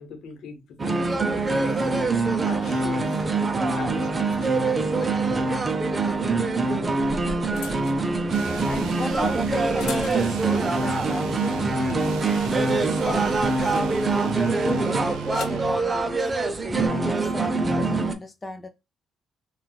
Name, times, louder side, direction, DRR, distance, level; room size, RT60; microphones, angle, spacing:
voice 1, 0.0-3.3 3.7-5.3 6.6-6.7, left 5 dB, 75° left, 0.9 m, -41 dB
sound 1, 0.8-18.1, right 3 dB, 30° right, 0.5 m, -24 dB
sound 2, 6.6-10.6 11.0-11.4 11.7-14.2 15.0-15.7 16.6-16.9, left 3 dB, 90° left, 0.5 m, -41 dB
sound 3, 8.3-15.8, right 6 dB, 90° right, 0.4 m, -37 dB
voice 2, 8.6-12.2 12.6-14.0 14.5-16.3 16.7-18.7, left 3 dB, 25° left, 0.4 m, -35 dB
2.3 x 2.3 x 3.9 m
cardioid pair, 90°, 0 cm